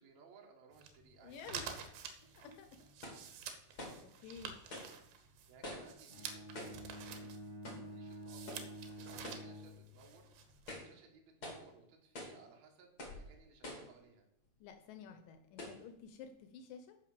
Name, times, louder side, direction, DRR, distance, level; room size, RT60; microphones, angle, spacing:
voice 1, 0.0-1.7 2.2-2.3 5.5-7.4 7.9-14.3 15.0-15.2, right 5 dB, 55° right, 1 dB, 2.6 m, -62 dB
sound 1, 0.7-10.8, right 7 dB, 75° right, 2.8 m, -50 dB
voice 2, 1.2-1.6 2.4-2.7 4.0-4.6 14.6-17.0, left 7 dB, 75° left, 8 dB, 2.1 m, -52 dB
sound 2, 3.0-3.3 3.8-4.1 4.7-5.0 5.6-6.0 6.5-6.9 7.6-7.9 8.5-8.7 9.2-9.5 10.0-10.1 10.6-11.0 11.4-11.7 12.1-12.4 13.0-13.3 13.6-14.0 14.6-14.7 15.6-15.8, left 1 dB, 40° left, 1.4 m, -47 dB
Bowed string instrument, 6.1-10.3, equal, 15° left, 2.3 m, -50 dB
9.8 x 5.2 x 6.8 m, 0.78 s
omnidirectional pair, 4.4 m